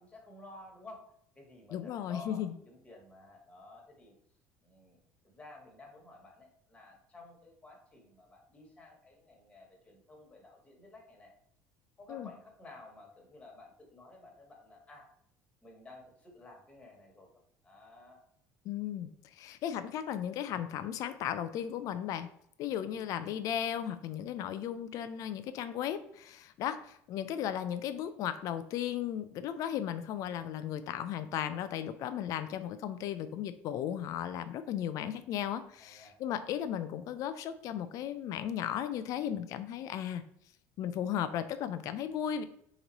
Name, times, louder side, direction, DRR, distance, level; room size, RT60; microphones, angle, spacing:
voice 1, 0.0-4.1 4.6-11.3 12.0-15.1 15.6-17.3 17.6-18.2 22.8-23.0 35.8-36.2, left 2 dB, 20° left, 0 dB, 1.4 m, -53 dB
voice 2, 1.7-2.5 12.1-12.3 18.7-22.3 22.6-40.2 40.8-42.4, left 10 dB, 55° left, 11 dB, 0.3 m, -36 dB
3.8 x 3.0 x 4.0 m, 0.70 s
supercardioid pair, 110°, 7 cm